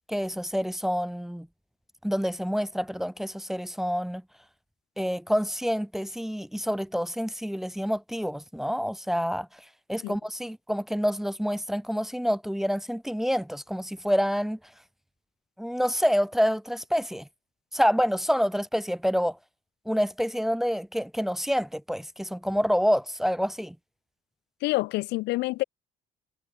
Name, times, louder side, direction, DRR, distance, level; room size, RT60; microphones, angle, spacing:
voice 1, 0.1-1.5 2.0-4.2 5.0-9.5 9.9-14.6 15.6-17.3 17.7-19.4 19.9-23.7, equal, ahead, 0.9 m, -27 dB
voice 2, 24.6-25.6, left 20 dB, 90° left, 1.1 m, -27 dB
cardioid pair, 110°, 17 cm